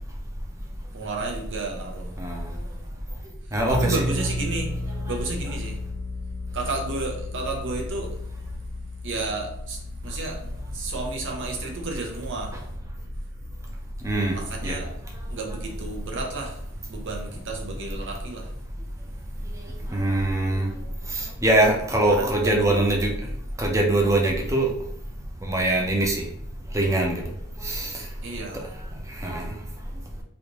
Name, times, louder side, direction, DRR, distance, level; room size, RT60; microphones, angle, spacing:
voice 1, 0.9-2.1 3.7-4.7 5.1-5.8 6.5-8.2 9.0-10.4 10.7-12.5 14.3-14.9 15.3-16.6 16.9-18.5 22.1-22.8 28.2-28.7, right 3 dB, 60° right, 1 dB, 0.7 m, -32 dB
voice 2, 3.5-4.0 14.0-14.3 14.6-14.7 19.9-20.7 21.4-23.1 23.6-24.7 25.4-26.1 26.7-27.2 27.6-27.9 29.2-29.5, right 1 dB, 15° right, 0 dB, 0.6 m, -22 dB
sound 1, 3.7-17.1, left 1 dB, 90° left, 1.3 m, -35 dB
3.2 x 2.6 x 2.9 m, 0.72 s
head